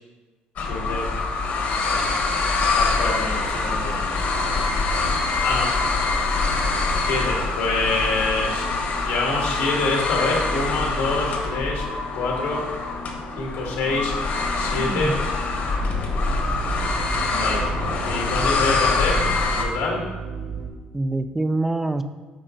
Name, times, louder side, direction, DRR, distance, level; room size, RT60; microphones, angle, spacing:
voice 1, 0.6-1.1 2.7-4.2 5.4-5.7 7.0-11.8 12.1-12.6 13.4-14.2 14.5-15.2 17.3-17.6 18.0-19.3 19.5-20.0, left 3 dB, 90° left, -1 dB, 2.1 m, -26 dB
sound 1, 0.6-19.6, left 3 dB, 55° left, 1.2 m, -24 dB
sound 2, 4.1-20.7, right 3 dB, 35° right, 1.1 m, -38 dB
voice 2, 14.8-15.2 20.9-22.0, right 2 dB, 10° right, 10 dB, 0.3 m, -26 dB
8.4 x 5.0 x 3.9 m, 1.3 s
cardioid pair, 125°, 3 cm